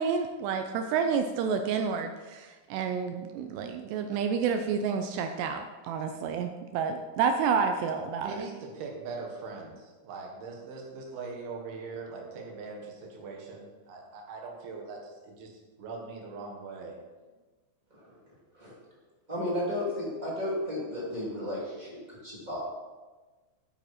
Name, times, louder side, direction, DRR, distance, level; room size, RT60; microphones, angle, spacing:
voice 1, 0.0-8.5, right 6 dB, 85° right, 6 dB, 2.4 m, -29 dB
voice 2, 8.2-15.5 15.8-16.9, right 4 dB, 65° right, 1 dB, 3.2 m, -41 dB
voice 3, 19.3-22.6, left 1 dB, 15° right, -6 dB, 1.4 m, -33 dB
11.0 x 8.9 x 4.3 m, 1.3 s
omnidirectional pair, 5.4 m